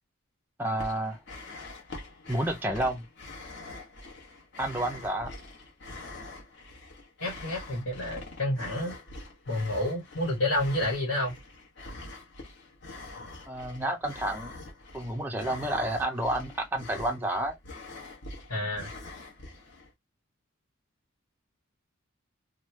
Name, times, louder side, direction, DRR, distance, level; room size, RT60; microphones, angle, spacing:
sound 1, 0.6-19.9, left 2 dB, 55° left, 1.0 m, -44 dB
voice 1, 0.6-1.2 2.3-3.0 4.6-5.3 13.5-14.5 14.9-17.6, right 1 dB, 10° right, 0.4 m, -30 dB
voice 2, 7.2-8.9 9.5-11.4 18.5-18.9, left 1 dB, 80° left, 1.2 m, -29 dB
3.0 x 2.1 x 3.0 m
head